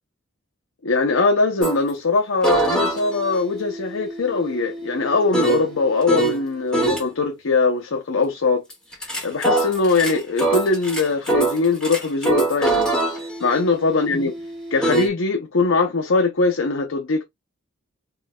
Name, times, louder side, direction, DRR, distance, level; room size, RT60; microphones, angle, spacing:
voice 1, 0.8-8.6 9.2-12.9 13.4-14.3 14.7-17.2, left 3 dB, 80° left, 0.7 m, -21 dB
sound 1, 1.6-1.8 2.4-6.4 6.7-7.0 8.7-15.1, right 2 dB, 5° left, 1.9 m, -24 dB
4.6 x 3.1 x 2.3 m
head